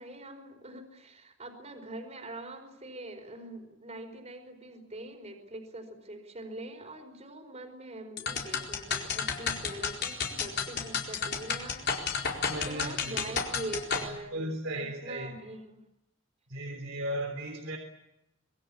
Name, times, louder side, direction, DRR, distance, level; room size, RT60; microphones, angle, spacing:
voice 1, 0.0-14.5 14.8-15.8, right 1 dB, 35° right, 6 dB, 4.8 m, -43 dB
sound 1, 8.2-14.1, left 6 dB, 55° left, 4.5 m, -32 dB
voice 2, 12.5-13.4 14.0-15.4 16.5-17.8, right 1 dB, 75° right, 3 dB, 3.6 m, -36 dB
26.0 x 22.0 x 8.6 m, 0.87 s
head